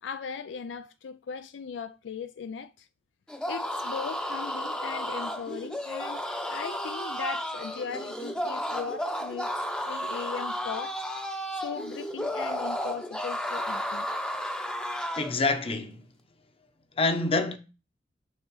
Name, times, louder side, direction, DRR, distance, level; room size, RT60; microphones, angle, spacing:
voice 1, 0.0-2.9 3.5-9.5 9.9-10.9 11.6-14.1, left 6 dB, 80° left, 0.4 m, -38 dB
sound 1, 3.3-15.4, equal, 5° left, 0.7 m, -33 dB
voice 2, 15.2-16.0 17.0-17.6, left 3 dB, 35° left, 0.9 m, -26 dB
6.5 x 3.6 x 6.2 m
head